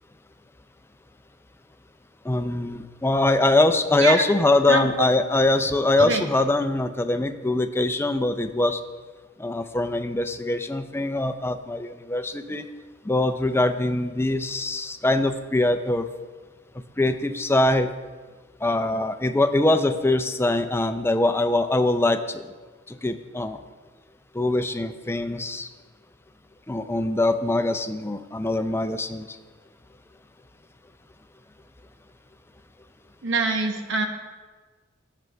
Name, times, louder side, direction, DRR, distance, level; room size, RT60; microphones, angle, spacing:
voice 1, 2.2-8.8 9.4-12.7 13.0-16.0 17.0-17.9 18.6-22.5 22.9-23.6 24.3-25.7 26.7-29.3, left 2 dB, 10° left, 9 dB, 0.5 m, -23 dB
voice 2, 4.7-5.1 6.0-6.3 33.2-34.1, right 3 dB, 65° right, 5 dB, 1.2 m, -24 dB
17.0 x 6.8 x 3.4 m, 1.4 s
head